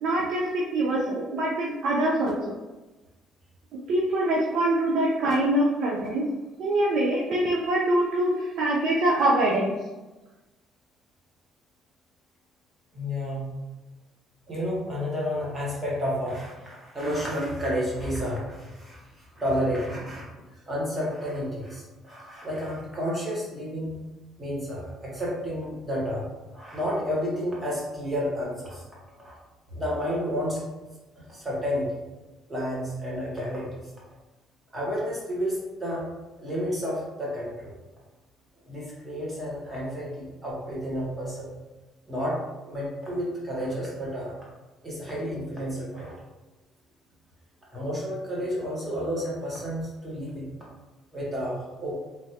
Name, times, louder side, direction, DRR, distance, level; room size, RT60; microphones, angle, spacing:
voice 1, 0.0-2.5 3.9-6.3 6.6-9.8, right 1 dB, 55° right, -3 dB, 0.4 m, -24 dB
voice 2, 12.9-13.5 14.5-20.2 20.7-24.0 24.4-28.8 29.2-29.3 29.7-30.6 31.2-31.9 32.5-33.7 34.7-36.0 36.4-37.7 38.6-41.5 42.1-44.3 44.8-46.1 47.7-50.5 51.1-52.0, equal, 15° right, -6 dB, 0.9 m, -31 dB
3.2 x 2.3 x 2.7 m, 1.1 s
cardioid pair, 175°, 0 cm